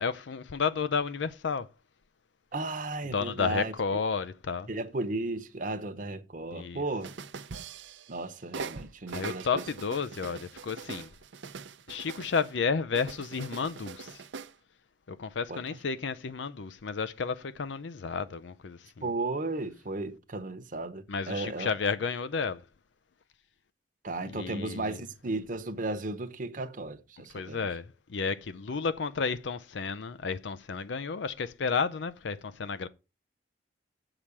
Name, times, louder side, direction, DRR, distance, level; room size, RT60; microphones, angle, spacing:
voice 1, 0.0-1.7 3.1-4.7 6.5-6.8 9.1-11.1 11.9-14.2 15.1-19.1 21.1-22.6 24.2-25.0 27.3-32.9, left 5 dB, 75° left, 0.5 m, -32 dB
voice 2, 2.5-3.7 4.7-7.1 8.1-9.6 15.5-15.6 19.0-21.7 24.0-27.7, right 2 dB, 45° right, 0.9 m, -34 dB
sound 1, 7.0-8.2 8.5-12.5 12.9-14.5, right 5 dB, 80° right, 0.6 m, -42 dB
7.4 x 5.0 x 7.0 m
head